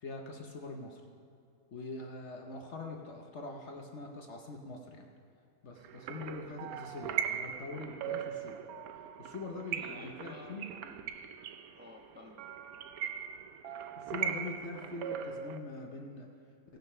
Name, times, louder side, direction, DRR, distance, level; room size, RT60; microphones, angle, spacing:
voice 1, 0.0-1.0 1.7-5.1 5.6-8.6 9.2-10.7 14.0-16.3, left 2 dB, 55° left, 2 dB, 1.0 m, -43 dB
sound 1, 5.8-15.6, right 8 dB, 75° right, 1.0 m, -39 dB
voice 2, 9.7-11.1 11.7-12.4, left 1 dB, 10° right, 0 dB, 0.8 m, -52 dB
16.0 x 6.6 x 5.5 m, 2.5 s
omnidirectional pair, 1.6 m